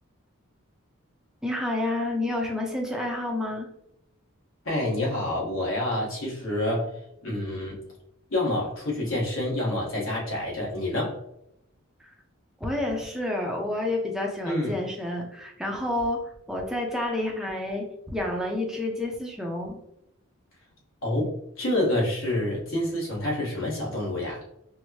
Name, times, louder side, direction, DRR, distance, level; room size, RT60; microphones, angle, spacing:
voice 1, 1.4-3.7 12.0-12.1 12.6-19.8, left 1 dB, 5° right, 0 dB, 0.5 m, -29 dB
voice 2, 4.6-6.9 7.2-7.8 8.3-11.2 14.4-14.8 21.0-24.4, left 1 dB, 65° left, -3 dB, 1.2 m, -28 dB
4.5 x 2.0 x 2.8 m, 0.79 s
head